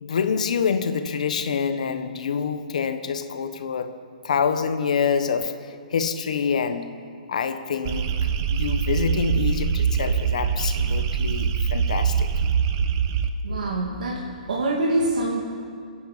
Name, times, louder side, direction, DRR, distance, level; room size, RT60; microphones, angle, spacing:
voice 1, 0.0-3.9 4.2-6.9 7.3-8.1 8.5-12.3, left 6 dB, 60° left, 9 dB, 1.2 m, -26 dB
sound 1, 7.8-13.3, right 7 dB, 25° right, 0.7 m, -23 dB
voice 2, 13.4-15.4, right 2 dB, 85° right, -3 dB, 2.4 m, -25 dB
27.0 x 10.0 x 5.1 m, 2.2 s
hypercardioid pair, 175°, 4 cm